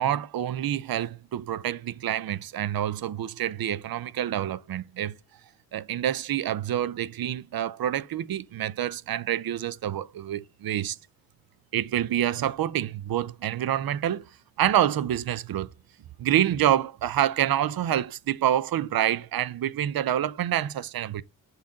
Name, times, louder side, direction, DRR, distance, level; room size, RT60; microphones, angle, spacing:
voice 1, 0.0-5.1 5.7-11.0 11.7-14.3 14.6-15.7 16.2-21.2, right 11 dB, 80° right, 0.6 m, -27 dB
7.1 x 4.0 x 3.7 m
cardioid pair, 70°, 35 cm